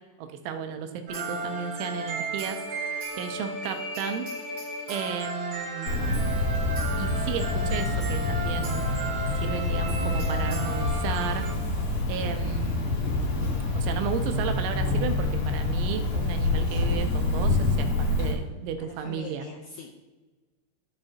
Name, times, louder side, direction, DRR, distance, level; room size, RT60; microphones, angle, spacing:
voice 1, 0.2-2.6 3.2-4.3 4.9-6.3 7.0-8.9 9.4-11.5 12.1-12.9 13.7-19.5, right 7 dB, 80° right, 6 dB, 3.1 m, -34 dB
sound 1, 1.1-11.5, right 2 dB, 50° right, 3.2 m, -34 dB
Cricket, 5.9-18.3, left 2 dB, 50° left, 2.6 m, -27 dB
voice 2, 18.8-19.9, left 4 dB, 85° left, 1 dB, 2.3 m, -43 dB
13.0 x 6.8 x 2.8 m, 1.2 s
omnidirectional pair, 5.5 m